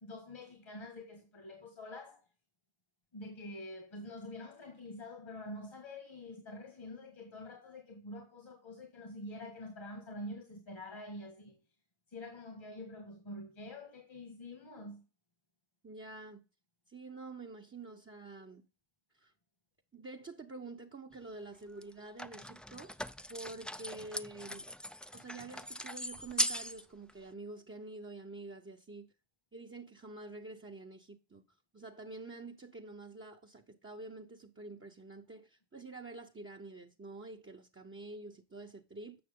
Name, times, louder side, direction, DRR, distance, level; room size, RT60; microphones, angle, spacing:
voice 1, 0.0-2.2 3.1-11.6 12.1-15.0, left 1 dB, 70° left, 1.9 m, -46 dB
voice 2, 15.8-16.4 16.9-18.6 19.1-19.3 19.9-22.9 23.3-24.7 25.1-29.1 29.5-31.4 31.7-39.2, right 3 dB, 25° right, 0.8 m, -48 dB
sound 1, 21.1-21.2 21.8-26.8 27.1-27.2, equal, ahead, 0.3 m, -39 dB
7.9 x 6.0 x 3.7 m
wide cardioid pair, 65°, 48 cm